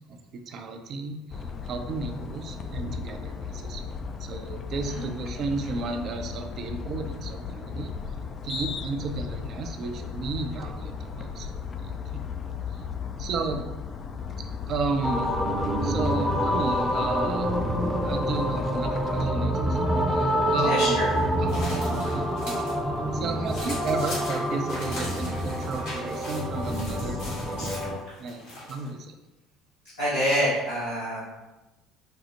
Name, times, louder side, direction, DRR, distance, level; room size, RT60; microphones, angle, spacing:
voice 1, 0.1-7.9 8.4-11.5 11.8-12.2 12.7-12.8 13.2-13.6 14.7-15.3 15.8-17.5 18.0-21.0 21.4-21.6 22.1-22.7 23.1-27.7 28.2-29.2, right 4 dB, 50° right, 5 dB, 0.4 m, -33 dB
sound 1, 1.3-19.3, left 5 dB, 40° left, 0.3 m, -36 dB
sound 2, 15.0-28.0, equal, 10° right, 0.6 m, -27 dB
voice 2, 20.6-21.1 27.6-27.8 30.0-31.2, equal, 90° left, -12 dB, 0.9 m, -27 dB
sound 3, 20.6-22.8 23.1-28.9, left 1 dB, 70° left, 1.4 m, -41 dB
4.3 x 2.0 x 2.8 m, 1.1 s
hypercardioid pair, 60°, 0 cm